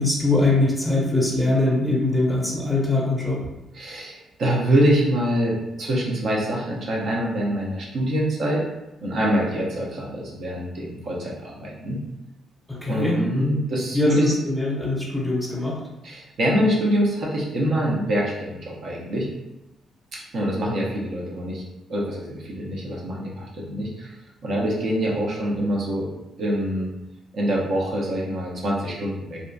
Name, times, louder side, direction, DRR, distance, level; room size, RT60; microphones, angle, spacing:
voice 1, 0.0-3.5 12.7-13.7 13.9-15.8, left 2 dB, 5° left, -3 dB, 0.6 m, -22 dB
voice 2, 3.7-8.6 9.0-12.0 12.9-14.3 16.0-19.3 20.1-21.6 21.9-24.1 24.4-26.1 26.4-26.9 27.3-29.4, equal, 60° right, -3 dB, 0.7 m, -25 dB
2.7 x 2.4 x 2.2 m, 0.96 s
cardioid pair, 90°, 0 cm